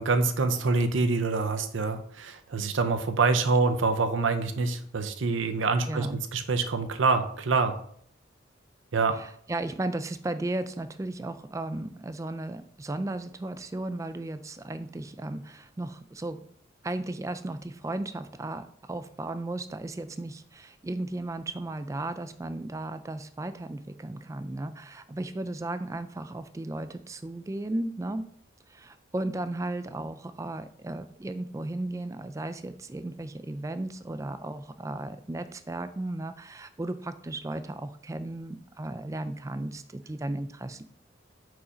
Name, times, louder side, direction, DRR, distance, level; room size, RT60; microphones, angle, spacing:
voice 1, 0.0-7.7 8.9-9.2, right 4 dB, 80° right, 8 dB, 0.6 m, -26 dB
voice 2, 5.9-6.2 9.1-16.5 16.8-28.3 28.7-40.8, right 2 dB, 15° right, 11 dB, 0.3 m, -35 dB
4.7 x 4.2 x 5.0 m, 0.64 s
head